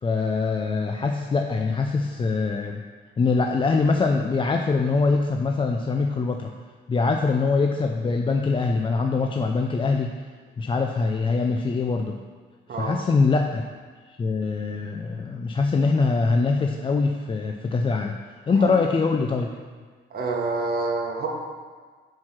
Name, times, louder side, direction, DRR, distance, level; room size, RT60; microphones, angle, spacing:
voice 1, 0.0-2.8 3.2-6.5 6.9-10.1 10.6-12.2 12.8-13.6 14.2-18.2 18.5-19.5, left 4 dB, 25° left, 3 dB, 0.4 m, -23 dB
voice 2, 20.1-21.3, right 3 dB, 50° right, -1 dB, 1.4 m, -27 dB
6.0 x 4.7 x 5.9 m, 1.5 s
cardioid pair, 90°, 20 cm